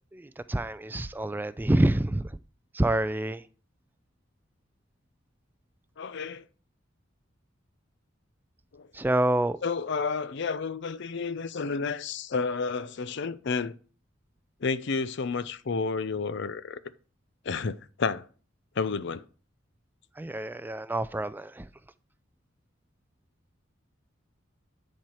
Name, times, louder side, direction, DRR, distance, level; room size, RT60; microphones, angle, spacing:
voice 1, 0.1-2.3 2.7-3.4 8.9-9.6 20.2-21.7, right 1 dB, 10° right, 0.3 m, -27 dB
voice 2, 6.0-6.4 8.7-8.9 9.6-13.7 14.6-16.8 17.4-18.3 18.8-19.2, left 4 dB, 60° left, 0.5 m, -31 dB
10.5 x 4.5 x 4.9 m
head